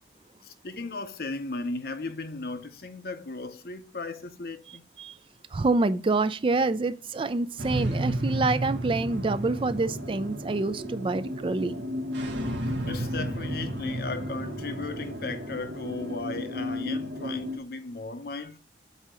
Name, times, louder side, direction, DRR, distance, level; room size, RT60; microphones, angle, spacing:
voice 1, 0.4-4.8 12.8-18.6, left 3 dB, 55° left, 0.7 m, -36 dB
voice 2, 5.5-11.8, right 3 dB, 30° right, 0.4 m, -27 dB
sound 1, 7.6-17.6, equal, 80° right, 1.4 m, -32 dB
8.1 x 2.8 x 6.2 m
head